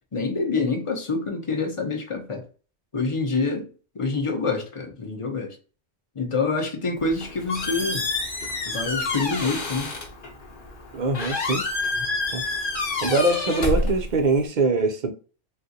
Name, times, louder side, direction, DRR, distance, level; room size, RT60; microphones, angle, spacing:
voice 1, 0.1-2.4 2.9-5.6 6.1-8.1 8.7-9.9 12.0-12.1, left 3 dB, 35° left, 0.6 m, -27 dB
Squeak, 7.0-14.5, left 2 dB, 50° left, 1.0 m, -29 dB
voice 2, 10.9-11.6 12.3-12.4 13.0-15.1, right 2 dB, 55° right, 0.5 m, -23 dB
3.7 x 2.4 x 2.6 m
omnidirectional pair, 1.2 m